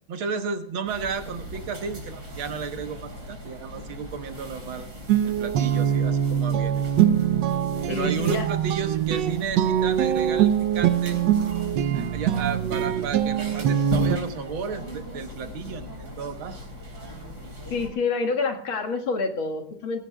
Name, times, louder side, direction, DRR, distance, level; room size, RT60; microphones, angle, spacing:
voice 1, 0.1-4.9 5.2-7.0 7.9-11.2 11.9-16.6, right 5 dB, 90° right, 7 dB, 2.0 m, -33 dB
sound 1, 0.9-17.9, equal, 55° right, 4.2 m, -39 dB
Guitar, 5.1-14.2, right 10 dB, 70° right, 1.3 m, -23 dB
voice 2, 7.9-8.5 17.7-20.0, left 3 dB, 90° left, 4 dB, 2.6 m, -27 dB
16.5 x 16.0 x 2.3 m, 0.66 s
omnidirectional pair, 2.2 m